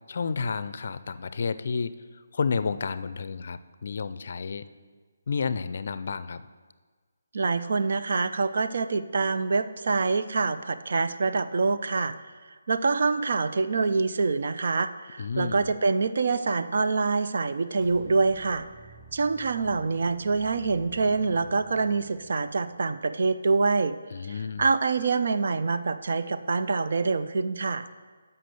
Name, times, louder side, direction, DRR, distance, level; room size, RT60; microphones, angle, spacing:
voice 1, 0.1-1.9 2.3-4.6 5.3-6.4 15.2-15.7 24.1-24.7, left 5 dB, 55° left, 13 dB, 0.4 m, -31 dB
voice 2, 7.3-12.1 12.7-18.6 19.1-23.9 24.6-27.9, right 4 dB, 60° right, 10 dB, 0.5 m, -25 dB
sound 1, 17.7-23.0, right 3 dB, 10° left, 2.0 m, -51 dB
7.6 x 5.6 x 6.8 m, 1.5 s
hypercardioid pair, 160°, 0 cm